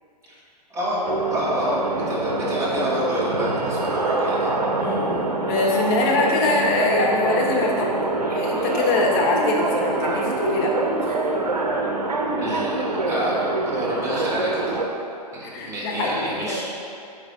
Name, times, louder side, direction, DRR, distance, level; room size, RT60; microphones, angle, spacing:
sound 1, 1.0-14.9, right 2 dB, 70° right, 0.7 m, -25 dB
voice 1, 1.3-4.5 12.4-14.8 15.3-16.6, equal, 15° right, -6 dB, 1.4 m, -28 dB
voice 2, 4.8-8.0 8.3-11.2 15.4-16.6, left 2 dB, 35° left, -2 dB, 1.1 m, -23 dB
8.7 x 5.0 x 2.8 m, 2.5 s
figure-of-eight pair, 110°, 21 cm